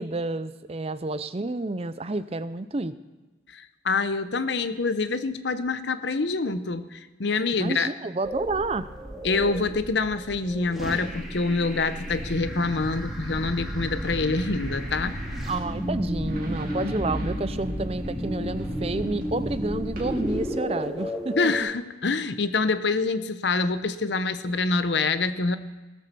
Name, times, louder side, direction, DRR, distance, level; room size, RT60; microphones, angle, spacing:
voice 1, 0.0-2.9 7.6-8.9 15.5-21.5, right 2 dB, 30° right, 13 dB, 0.5 m, -30 dB
voice 2, 3.5-7.9 9.2-15.1 21.4-25.6, left 3 dB, 65° left, 12 dB, 0.8 m, -26 dB
sound 1, 8.2-21.6, equal, ahead, 2.1 m, -34 dB
sound 2, 12.1-20.5, right 1 dB, 45° right, 2.5 m, -35 dB
18.0 x 7.5 x 6.9 m, 1.2 s
head